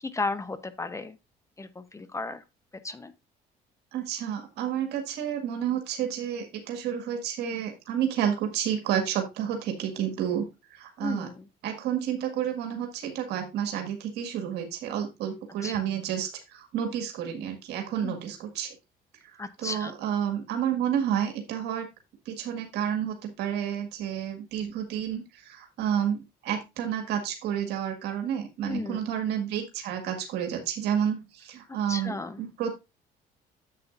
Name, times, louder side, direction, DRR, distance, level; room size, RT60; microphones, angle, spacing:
voice 1, 0.0-1.2 1.6-2.4 2.8-3.1 11.0-11.4 15.6-15.7 18.0-18.1 19.4-20.0 28.7-29.0 31.9-32.4, left 3 dB, 15° left, 13 dB, 0.9 m, -34 dB
voice 2, 3.9-10.5 10.7-11.3 11.6-18.8 19.2-21.9 22.3-32.7, right 9 dB, 80° right, 5 dB, 1.9 m, -30 dB
10.0 x 7.7 x 2.5 m, 0.24 s
cardioid pair, 110°, 17 cm